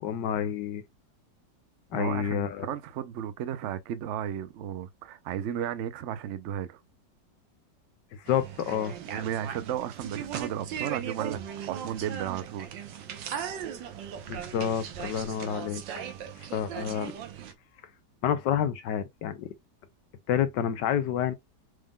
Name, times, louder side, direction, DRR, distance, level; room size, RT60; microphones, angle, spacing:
voice 1, 0.0-0.8 1.9-2.7 8.1-8.9 14.3-15.8 16.4-17.1 18.2-19.5 20.3-21.3, left 9 dB, 75° left, 1.3 m, -29 dB
voice 2, 1.9-6.8 9.1-12.7, right 10 dB, 70° right, 0.7 m, -34 dB
sound 1, 8.3-17.5, right 8 dB, 90° right, 1.6 m, -38 dB
6.3 x 3.6 x 2.3 m
omnidirectional pair, 1.9 m